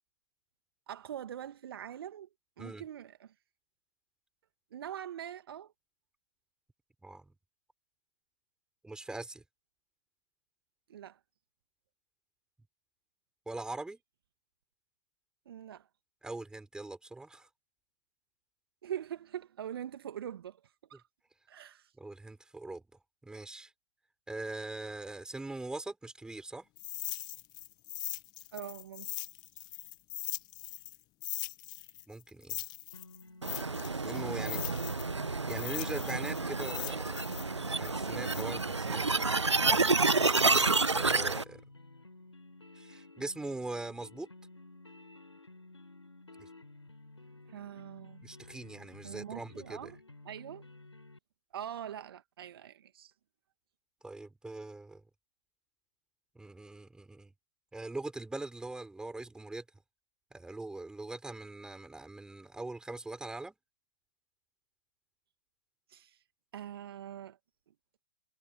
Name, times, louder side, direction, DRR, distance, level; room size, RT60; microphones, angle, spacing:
voice 1, 0.9-2.3 2.6-3.3 4.7-5.7 10.9-11.2 15.5-15.9 18.8-20.6 20.9-21.0 21.5-21.9 28.5-29.2 34.4-34.8 38.8-39.3 40.4-40.8 42.9-43.1 47.5-48.2 49.0-50.0 50.2-50.6 51.5-53.1 65.9-66.2 66.5-67.4, right 10 dB, 60° right, 1.9 m, -43 dB
voice 2, 7.0-7.3 8.8-9.4 13.5-14.0 16.2-17.5 22.0-22.8 23.2-23.7 24.3-26.6 32.1-32.6 34.0-34.6 35.5-37.2 37.7-39.0 39.6-40.1 40.9-41.6 42.8-44.3 46.4-46.5 48.2-49.9 54.0-55.0 56.3-57.3 57.7-59.6 60.3-63.6, right 2 dB, 5° right, 6.2 m, -42 dB
sound 1, 26.8-31.0 31.2-35.1 35.5-39.6, left 18 dB, 30° left, 1.8 m, -41 dB
sound 2, 32.9-51.2, left 2 dB, 85° left, 5.5 m, -54 dB
sound 3, 33.4-41.4, right 3 dB, 85° right, 1.4 m, -29 dB
figure-of-eight pair, 110°, 14 cm